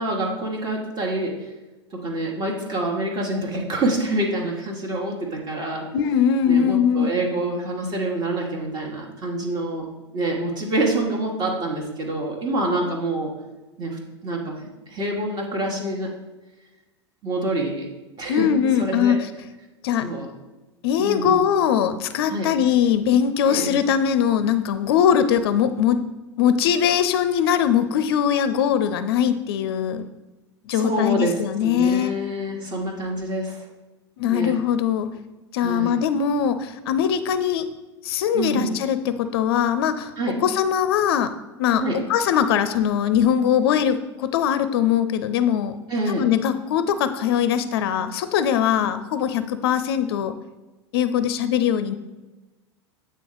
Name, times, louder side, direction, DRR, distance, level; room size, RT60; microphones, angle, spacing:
voice 1, 0.0-1.5 1.9-5.8 6.5-9.8 10.1-13.3 13.8-14.6 14.9-16.1 17.2-17.9 18.2-18.5 18.8-19.2 20.0-20.3 21.0-21.4 22.3-22.5 23.5-23.7 30.7-33.7 34.3-34.5 35.6-35.9 38.3-38.7 40.2-40.3 41.8-42.0 45.9-46.2, right 1 dB, 30° right, 0 dB, 1.2 m, -26 dB
voice 2, 5.9-7.1 18.3-19.2 19.8-20.1 20.8-26.0 26.4-30.0 30.7-32.1 34.2-35.1 35.5-37.7 38.0-40.1 40.4-41.3 41.6-41.8 42.1-45.7 46.1-50.3 50.9-52.0, left 8 dB, 60° left, 12 dB, 0.4 m, -21 dB
8.2 x 3.3 x 3.9 m, 1.1 s
figure-of-eight pair, 85°, 14 cm